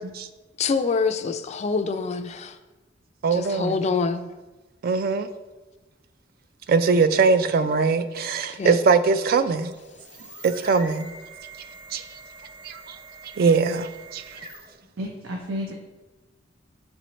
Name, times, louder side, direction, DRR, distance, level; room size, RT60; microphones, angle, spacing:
voice 1, 0.6-2.6 3.3-4.3 8.5-8.8, left 4 dB, 35° left, 0.3 m, -25 dB
voice 2, 3.2-3.8 4.8-5.3 6.7-9.7 10.4-11.1 11.9-12.0 12.6-13.0 13.4-14.4, right 4 dB, 50° right, 0.3 m, -21 dB
sound 1, 9.7-14.9, right 3 dB, 25° right, 0.7 m, -44 dB
voice 3, 15.0-15.7, equal, 80° right, 0.7 m, -31 dB
7.6 x 4.3 x 3.0 m
head